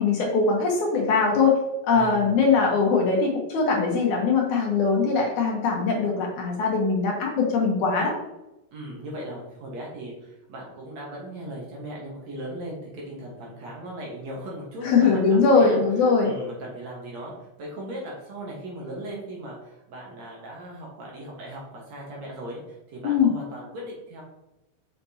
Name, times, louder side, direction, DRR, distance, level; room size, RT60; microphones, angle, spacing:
voice 1, 0.0-1.6 1.9-8.1 14.8-16.3 23.0-23.3, left 4 dB, 65° left, 0 dB, 2.3 m, -21 dB
voice 2, 1.9-2.3 8.7-17.3 17.6-24.2, right 1 dB, 60° right, -3 dB, 2.4 m, -38 dB
6.6 x 5.8 x 2.8 m, 0.93 s
omnidirectional pair, 4.0 m